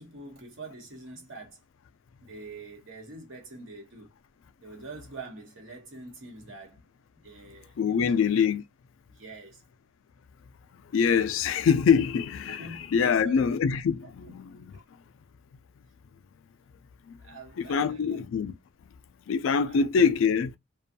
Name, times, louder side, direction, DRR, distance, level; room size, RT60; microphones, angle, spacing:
voice 1, 0.0-1.6 2.2-4.1 4.6-6.8 7.2-8.2 9.1-9.6 12.5-13.4 17.2-18.2 19.7-19.9, right 3 dB, 70° right, 1.0 m, -45 dB
voice 2, 7.8-8.6 10.9-14.7 17.6-18.5 19.3-20.6, left 6 dB, 70° left, 0.3 m, -24 dB
2.5 x 2.2 x 2.6 m
head